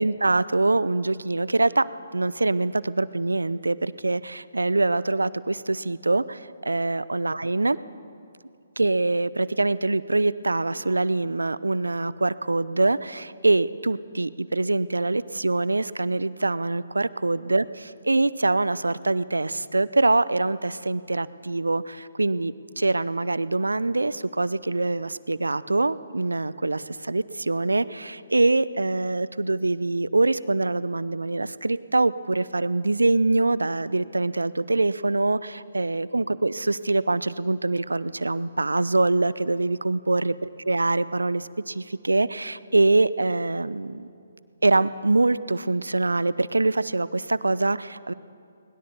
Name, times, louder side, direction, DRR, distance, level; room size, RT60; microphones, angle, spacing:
voice 1, 0.0-7.8 8.8-40.4 40.7-44.1 44.6-48.1, right 2 dB, 75° right, 18 dB, 0.6 m, -24 dB
21.5 x 20.5 x 7.0 m, 2.5 s
figure-of-eight pair, 135°, 0 cm